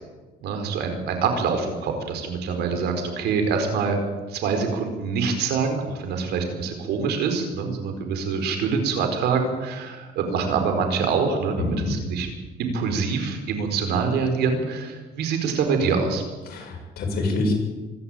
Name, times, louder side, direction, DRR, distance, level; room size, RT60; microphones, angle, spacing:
voice 1, 0.4-4.0 4.3-12.3 12.6-16.2, right 5 dB, 75° right, 6 dB, 4.6 m, -25 dB
voice 2, 11.6-11.9 16.5-17.5, left 2 dB, 65° left, 1 dB, 7.5 m, -26 dB
25.0 x 12.0 x 9.0 m, 1.2 s
cardioid pair, 110°, 17 cm